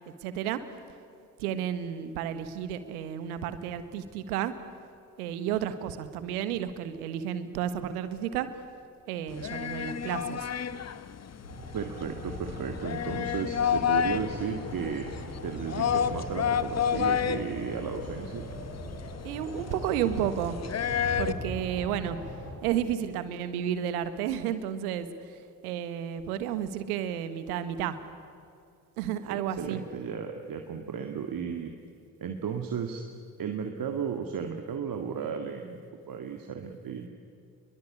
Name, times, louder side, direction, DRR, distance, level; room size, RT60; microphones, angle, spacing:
voice 1, 0.2-0.6 1.4-4.5 5.2-8.5 9.1-10.5 19.2-20.6 21.2-22.2 22.6-28.0 29.0-29.8, right 10 dB, 70° right, 12 dB, 1.6 m, -32 dB
sound 1, 9.3-21.3, left 8 dB, 35° left, 1.2 m, -31 dB
sound 2, 11.4-22.5, left 1 dB, 90° left, 4.7 m, -40 dB
voice 2, 11.7-15.1 15.4-18.4 29.3-31.7 32.2-33.0 33.4-35.8 36.1-37.1, right 7 dB, 45° right, 4 dB, 2.1 m, -34 dB
29.0 x 22.5 x 8.6 m, 2.5 s
figure-of-eight pair, 40°, 46 cm